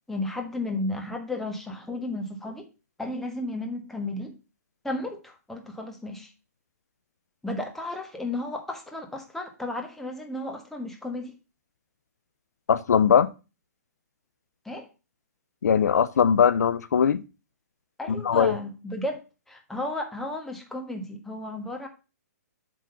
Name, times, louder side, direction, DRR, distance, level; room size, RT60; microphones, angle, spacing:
voice 1, 0.1-2.6 3.0-4.3 4.8-6.3 7.4-11.3 14.6-14.9 18.0-19.2 19.5-21.9, left 2 dB, 5° left, 1.3 m, -33 dB
voice 2, 12.7-13.3 15.6-17.2 18.1-18.6, left 7 dB, 80° left, 0.6 m, -20 dB
7.7 x 3.8 x 6.5 m
hypercardioid pair, 145°, 9 cm